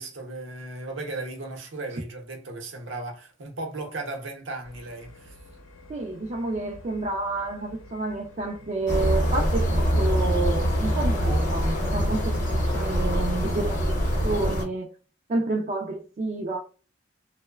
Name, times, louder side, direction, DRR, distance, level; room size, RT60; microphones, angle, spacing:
voice 1, 0.0-5.4, right 2 dB, 75° right, 0.7 m, -36 dB
sound 1, 4.6-11.8, left 1 dB, 90° left, 0.7 m, -49 dB
voice 2, 5.9-13.9 14.2-14.9 15.3-16.6, right 2 dB, 35° right, 0.3 m, -29 dB
sound 2, 8.9-14.7, equal, 40° left, 0.7 m, -24 dB
2.9 x 2.0 x 2.2 m
head